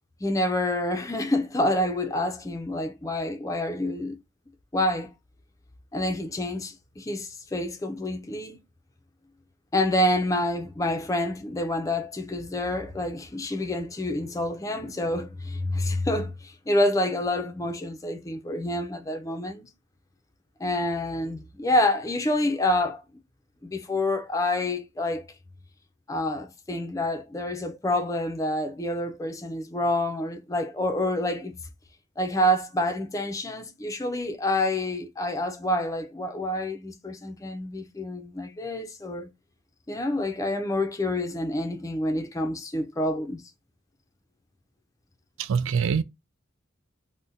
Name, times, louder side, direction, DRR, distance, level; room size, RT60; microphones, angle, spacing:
voice 1, 0.2-4.2 4.7-5.1 5.9-8.6 9.7-19.7 20.6-23.0 23.6-25.3 26.1-31.5 32.2-39.3 39.9-43.4, left 1 dB, 15° left, 0.4 m, -27 dB
voice 2, 45.4-46.0, right 6 dB, 70° right, 0.3 m, -24 dB
2.6 x 2.1 x 3.7 m
head